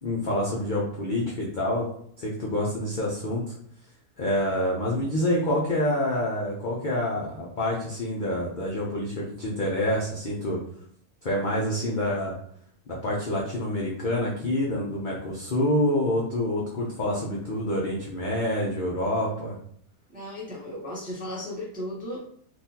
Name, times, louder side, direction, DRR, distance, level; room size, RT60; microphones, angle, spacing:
voice 1, 0.0-1.9 2.2-3.5 4.2-10.6 11.2-12.3 12.9-19.5, left 1 dB, 50° left, -4 dB, 0.6 m, -27 dB
voice 2, 20.1-22.2, left 1 dB, 10° right, -5 dB, 0.6 m, -35 dB
3.9 x 2.5 x 2.7 m, 0.65 s
omnidirectional pair, 1.6 m